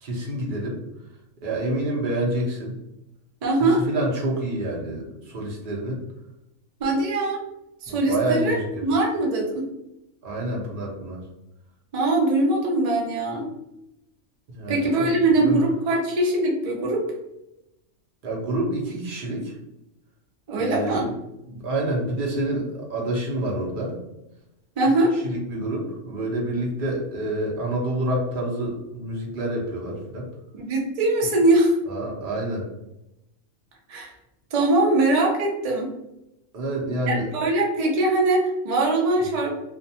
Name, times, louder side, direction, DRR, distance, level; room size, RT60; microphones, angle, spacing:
voice 1, 0.0-0.8 1.4-2.8 3.6-6.0 7.9-8.8 10.2-11.2 14.5-15.1 15.4-15.6 18.2-19.5 20.5-21.1 21.5-22.6 22.9-24.0 25.2-30.3 31.9-32.7 36.5-37.5, right 1 dB, 50° right, -2 dB, 0.7 m, -28 dB
voice 2, 3.4-3.8 6.8-7.4 7.8-8.6 8.8-9.7 11.9-13.5 14.7-17.0 20.5-21.1 24.8-25.1 30.5-31.7 33.9-34.1 34.5-35.9 37.1-39.5, right 2 dB, 65° right, -1 dB, 0.3 m, -22 dB
2.5 x 2.2 x 2.6 m, 0.89 s
omnidirectional pair, 1.5 m